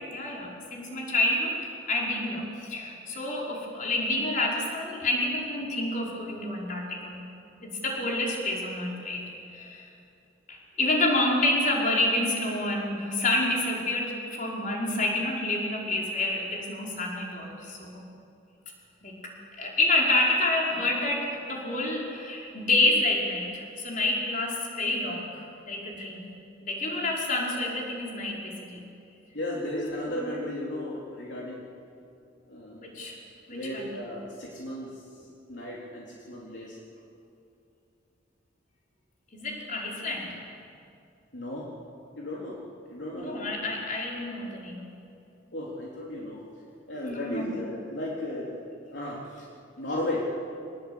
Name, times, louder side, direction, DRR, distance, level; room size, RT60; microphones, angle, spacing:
voice 1, 0.1-7.3 7.6-9.2 9.5-9.9 10.5-18.0 19.0-19.1 19.6-26.3 26.6-28.9 30.1-30.2 32.8-33.2 33.5-34.0 39.3-40.4 43.1-44.9 47.0-47.5, left 2 dB, 40° left, -2 dB, 5.3 m, -28 dB
voice 2, 29.3-31.7 32.5-32.9 33.5-35.0 35.5-36.8 41.3-41.7 42.2-42.6 42.9-43.7 45.5-46.4 46.9-48.6 48.9-49.5 49.8-50.3, left 1 dB, 65° left, -4 dB, 3.7 m, -35 dB
25.5 x 20.0 x 8.9 m, 2.6 s
head